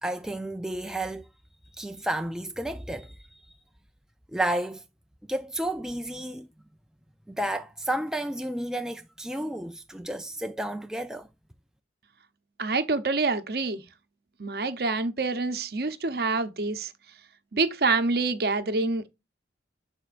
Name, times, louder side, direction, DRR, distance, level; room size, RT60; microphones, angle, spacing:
voice 1, 0.0-1.3 1.8-3.2 4.3-4.8 5.3-6.5 7.3-11.3, right 1 dB, 5° right, 0.4 m, -31 dB
voice 2, 12.6-13.8 14.4-16.9 17.5-19.1, right 3 dB, 55° right, 0.8 m, -26 dB
11.5 x 4.4 x 2.5 m
head